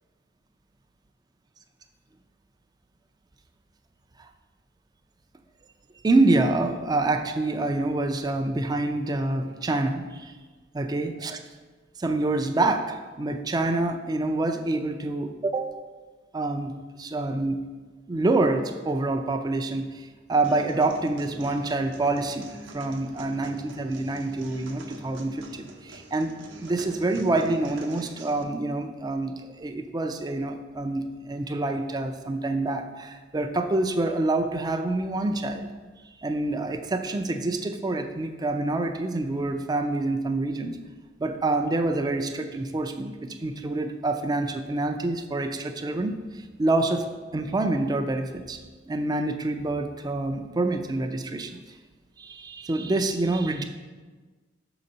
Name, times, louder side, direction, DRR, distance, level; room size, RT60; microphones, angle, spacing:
voice 1, 6.0-10.3 10.7-11.4 12.0-15.8 16.3-17.6 18.1-35.7 36.2-40.8 41.2-43.1 43.4-47.0 47.3-48.6 48.9-51.6 52.2-53.6, right 2 dB, 20° right, 6 dB, 0.4 m, -27 dB
sound 1, 20.4-28.4, right 2 dB, 75° right, 0.7 m, -45 dB
5.8 x 3.9 x 5.4 m, 1.3 s
head